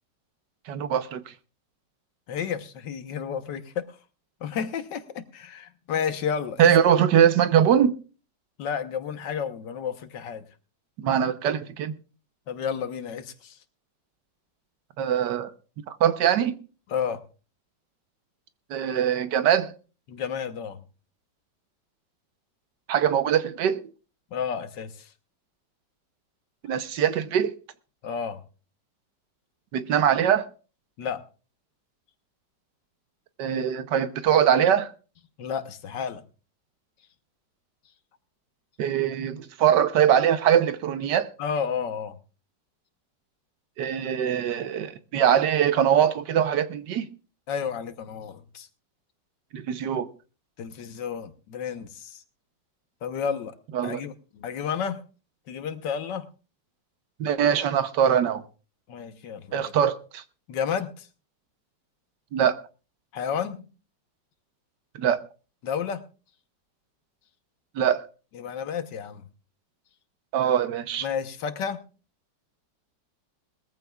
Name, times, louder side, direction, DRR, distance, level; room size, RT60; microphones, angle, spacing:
voice 1, 0.7-1.2 6.6-7.9 11.0-11.9 15.0-15.5 15.9-16.5 18.7-19.7 22.9-23.8 26.6-27.5 29.7-30.5 33.4-34.9 38.8-41.3 43.8-47.1 49.5-50.1 53.7-54.0 57.2-58.4 59.5-60.2 62.3-62.6 64.9-65.2 67.7-68.1 70.3-71.1, right 9 dB, 80° right, 1.5 m, -22 dB
voice 2, 2.3-3.9 4.4-6.7 8.6-10.4 12.5-13.6 16.9-17.2 20.1-20.8 24.3-25.1 28.0-28.4 31.0-31.2 35.4-36.2 41.4-42.2 47.5-48.7 50.6-52.2 53.0-53.5 53.8-55.0 55.5-56.3 58.9-59.7 60.5-61.1 63.1-63.7 65.6-66.0 68.3-69.2 71.0-71.8, left 7 dB, 80° left, 1.7 m, -31 dB
21.0 x 14.5 x 2.4 m
omnidirectional pair, 1.9 m